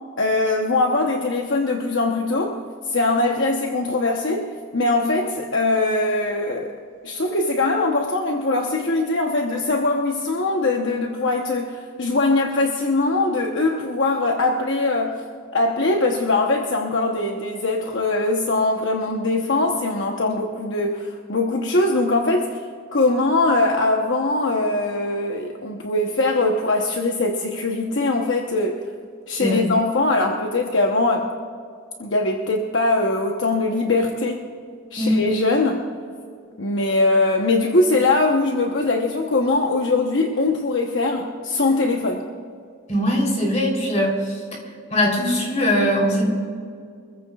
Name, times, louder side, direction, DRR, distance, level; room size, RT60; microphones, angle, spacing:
voice 1, 0.2-2.6 2.9-6.8 7.0-15.2 15.5-22.6 22.9-28.8 29.3-31.3 32.0-34.5 34.9-35.8 36.6-42.2, left 2 dB, 60° left, 1 dB, 1.0 m, -21 dB
voice 2, 42.9-44.1 44.9-46.2, equal, 35° left, -1 dB, 3.6 m, -20 dB
25.5 x 15.0 x 2.4 m, 2.2 s
head